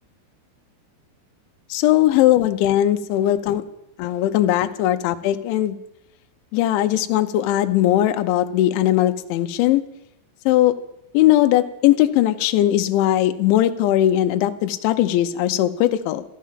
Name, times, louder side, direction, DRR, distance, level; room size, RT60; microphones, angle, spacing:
voice 1, 1.7-3.6 4.0-5.8 6.5-9.8 10.5-10.8 11.1-16.2, left 13 dB, 80° left, 7 dB, 3.0 m, -19 dB
14.5 x 12.5 x 7.5 m, 0.82 s
omnidirectional pair, 5.7 m